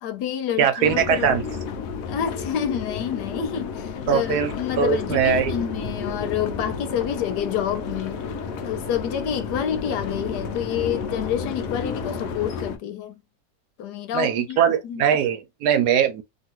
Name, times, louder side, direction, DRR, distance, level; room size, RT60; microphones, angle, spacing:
voice 1, 0.0-1.3 2.1-8.2 8.6-13.2 13.8-14.6 14.8-15.0, left 9 dB, 90° left, 1.3 m, -28 dB
voice 2, 0.6-1.4 4.1-5.5 14.1-16.2, right 8 dB, 80° right, 1.1 m, -21 dB
sound 1, 0.8-12.8, left 6 dB, 70° left, 0.9 m, -32 dB
sound 2, 4.9-12.5, left 1 dB, 20° left, 0.9 m, -39 dB
3.0 x 2.5 x 2.9 m
omnidirectional pair, 1.7 m